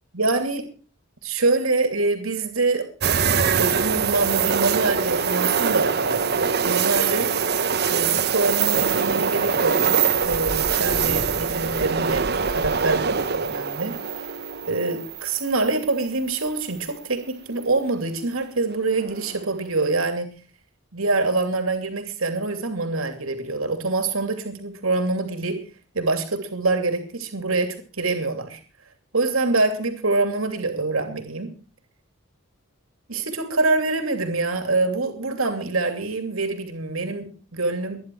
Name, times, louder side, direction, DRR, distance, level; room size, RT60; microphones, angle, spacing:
voice 1, 0.1-0.6 1.2-2.9 3.5-7.3 7.9-9.8 10.2-14.0 14.7-20.3 20.9-25.6 25.9-28.6 29.1-31.5 33.1-38.0, right 3 dB, 80° right, 7 dB, 2.7 m, -25 dB
sound 1, 3.0-16.0 16.4-16.5 19.0-19.4, right 6 dB, 50° right, 1.0 m, -23 dB
21.5 x 10.5 x 4.6 m, 0.38 s
head